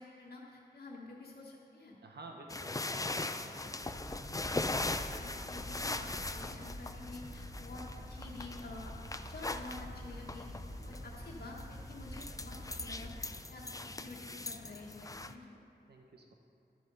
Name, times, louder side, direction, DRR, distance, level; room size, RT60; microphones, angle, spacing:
voice 1, 0.0-2.0 5.1-10.5 10.8-15.4, left 2 dB, 70° left, -5 dB, 1.4 m, -49 dB
voice 2, 2.0-4.0 10.7-10.9 15.8-16.3, right 2 dB, 75° right, 2 dB, 1.1 m, -53 dB
sound 1, 2.5-15.3, left 2 dB, 20° left, 0.5 m, -40 dB
sound 2, 3.8-13.1, equal, 50° right, 2.3 m, -47 dB
12.0 x 7.8 x 5.6 m, 2.7 s
cardioid pair, 60°, 17 cm